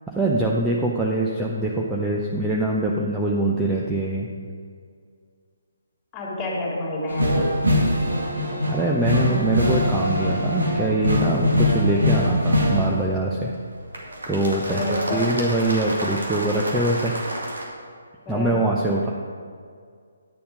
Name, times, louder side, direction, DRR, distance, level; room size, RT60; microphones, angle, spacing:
voice 1, 0.1-4.3 8.7-13.5 14.3-17.1 18.3-19.1, right 2 dB, 5° right, -3 dB, 0.7 m, -23 dB
voice 2, 6.1-7.5 14.7-15.3 18.2-18.6, left 1 dB, 15° left, -4 dB, 2.7 m, -28 dB
sound 1, 7.1-13.1 13.9-17.6, left 1 dB, 75° right, 2.0 m, -23 dB
10.5 x 6.9 x 5.2 m, 2.1 s
figure-of-eight pair, 140°, 0 cm